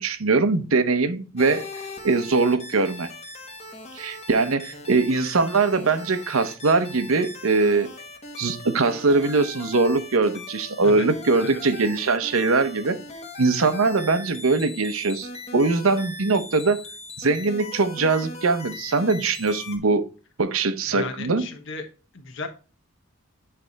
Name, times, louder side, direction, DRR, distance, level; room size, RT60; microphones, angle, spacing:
voice 1, 0.0-1.7 2.0-3.1 3.9-7.9 8.4-13.0 13.4-16.8 17.2-20.0 20.4-21.5, right 3 dB, 85° right, 0.8 m, -22 dB
sound 1, 1.4-19.8, left 2 dB, 30° left, 1.3 m, -40 dB
voice 2, 20.9-21.8 22.1-22.5, left 4 dB, 65° left, 1.2 m, -35 dB
9.6 x 3.4 x 4.0 m
head